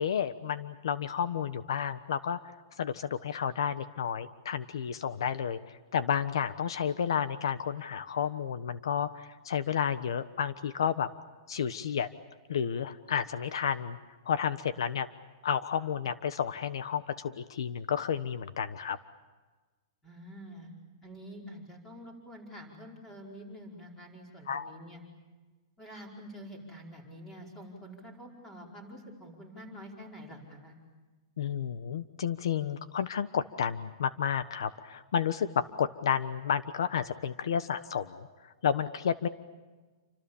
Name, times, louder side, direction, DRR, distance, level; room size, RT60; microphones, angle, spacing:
voice 1, 0.0-2.4 2.8-11.1 11.5-12.1 12.5-14.0 14.2-15.1 15.4-19.0 24.5-24.7 31.4-39.3, left 8 dB, 75° left, 13 dB, 1.2 m, -31 dB
voice 2, 20.0-20.7 21.0-25.0 25.8-30.8, equal, 10° left, 1 dB, 4.9 m, -47 dB
29.0 x 26.0 x 7.2 m, 1.3 s
supercardioid pair, 175°, 3 cm